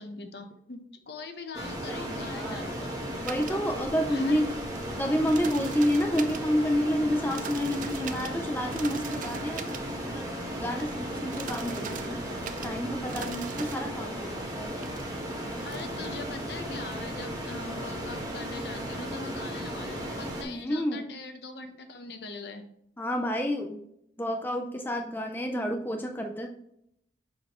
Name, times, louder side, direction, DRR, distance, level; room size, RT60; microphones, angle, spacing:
voice 1, 0.0-3.0 4.1-4.4 15.6-22.7, left 3 dB, 60° left, 6 dB, 0.8 m, -42 dB
sound 1, 1.5-20.4, equal, 20° right, 1.2 m, -35 dB
voice 2, 1.8-2.7 3.2-4.5 5.0-9.8 10.1-12.2 12.6-14.7 20.4-21.1 23.0-23.8 24.2-26.5, equal, 10° left, 3 dB, 0.5 m, -29 dB
sound 2, 2.8-20.6, right 6 dB, 45° right, 0.4 m, -45 dB
6.3 x 5.1 x 3.0 m, 0.75 s
head